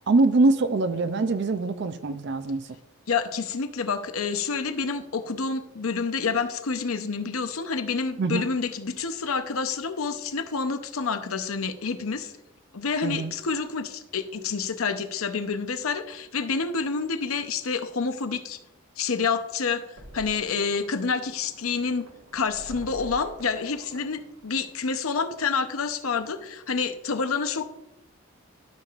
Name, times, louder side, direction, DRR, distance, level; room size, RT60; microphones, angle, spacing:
voice 1, 0.1-2.7 8.2-8.5 13.0-13.3, right 3 dB, 50° right, 10 dB, 0.4 m, -23 dB
voice 2, 3.1-12.3 12.7-18.6 19.0-19.8 20.1-22.1 22.3-27.7, left 5 dB, 80° left, 9 dB, 0.7 m, -28 dB
sound 1, 20.0-25.0, right 1 dB, 85° right, 1.4 m, -47 dB
13.0 x 6.8 x 2.5 m, 0.89 s
head